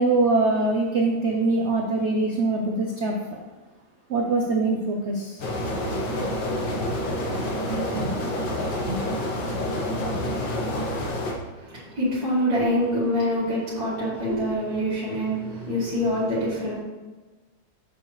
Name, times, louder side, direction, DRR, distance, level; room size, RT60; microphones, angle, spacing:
voice 1, 0.0-3.4 4.1-5.4 8.0-8.1 8.9-9.0, right 2 dB, 55° right, 1 dB, 0.8 m, -23 dB
sound 1, 5.4-11.3, left 1 dB, 65° left, 1.8 m, -28 dB
voice 2, 11.5-16.8, equal, 90° right, -10 dB, 3.4 m, -25 dB
8.1 x 6.9 x 3.2 m, 1.2 s
omnidirectional pair, 2.0 m